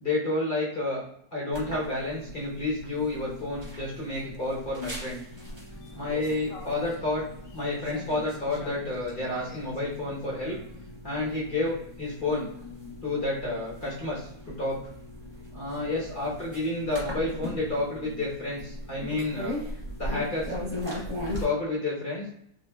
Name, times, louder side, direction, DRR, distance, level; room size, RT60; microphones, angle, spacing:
voice 1, 0.0-1.0 1.3-5.2 5.9-10.6 11.0-12.5 13.0-14.9 15.5-19.6 20.0-20.5 21.4-22.3, left 2 dB, 35° left, -6 dB, 0.9 m, -30 dB
sound 1, 1.5-21.4, left 1 dB, 30° right, 0.4 m, -39 dB
sound 2, 4.2-11.0, left 5 dB, 75° left, 0.7 m, -47 dB
4.9 x 2.2 x 2.3 m, 0.70 s
omnidirectional pair, 1.9 m